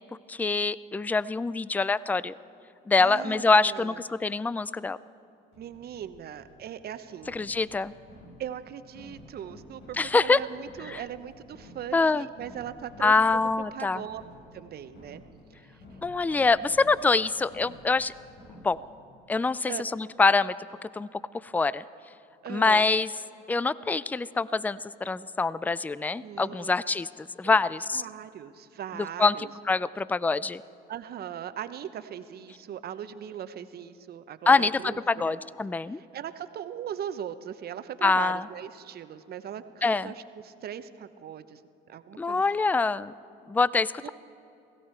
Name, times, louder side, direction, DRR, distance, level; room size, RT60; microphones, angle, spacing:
voice 1, 0.3-2.3 2.9-5.0 7.3-7.9 10.0-10.4 10.9-11.0 11.9-12.3 13.0-14.0 16.0-18.1 18.6-18.8 19.3-20.5 20.8-21.1 21.4-21.8 22.5-23.1 23.5-28.0 28.9-30.6 34.5-36.0 38.0-38.4 39.8-40.1 42.2-43.1 43.5-44.1, left 4 dB, 10° left, 19 dB, 0.3 m, -25 dB
voice 2, 3.0-4.0 5.6-7.4 8.4-13.4 13.7-14.2 14.5-15.2 19.7-19.8 22.4-22.9 26.2-26.8 27.4-27.6 27.9-29.5 30.9-35.4 35.9-41.6 41.9-42.4 44.0-44.1, right 9 dB, 50° right, 12 dB, 0.8 m, -39 dB
sound 1, 5.5-19.0, left 1 dB, 65° left, 4.5 m, -51 dB
17.0 x 16.5 x 4.4 m, 2.7 s
supercardioid pair, 75°, 20 cm